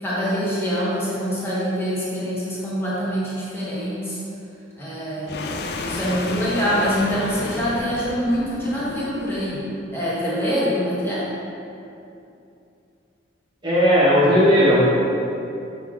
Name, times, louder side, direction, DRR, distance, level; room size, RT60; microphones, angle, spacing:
voice 1, 0.0-4.2 4.8-9.6 9.9-11.3, equal, 10° left, -8 dB, 1.2 m, -25 dB
sound 1, 5.3-9.6, left 2 dB, 55° left, 0.4 m, -31 dB
voice 2, 13.6-14.8, equal, 25° right, -8 dB, 1.2 m, -16 dB
6.7 x 5.1 x 3.7 m, 2.7 s
head